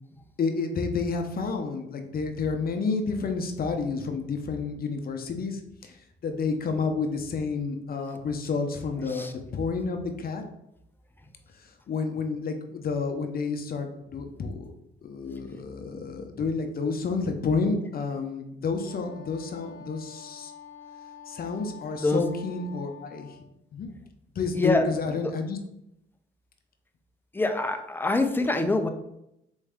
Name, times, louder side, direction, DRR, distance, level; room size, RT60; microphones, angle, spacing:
voice 1, 0.4-6.0 6.2-10.4 11.6-14.7 15.0-20.5 21.3-23.4 23.7-23.9 24.3-25.6, left 4 dB, 50° left, 5 dB, 0.7 m, -30 dB
Wind instrument woodwind instrument, 18.8-23.5, left 7 dB, 85° left, 0.6 m, -47 dB
voice 2, 24.5-24.9 25.2-25.3 27.3-28.9, left 2 dB, 10° left, 6 dB, 0.5 m, -25 dB
4.3 x 3.1 x 3.6 m, 0.80 s
cardioid pair, 90°, 20 cm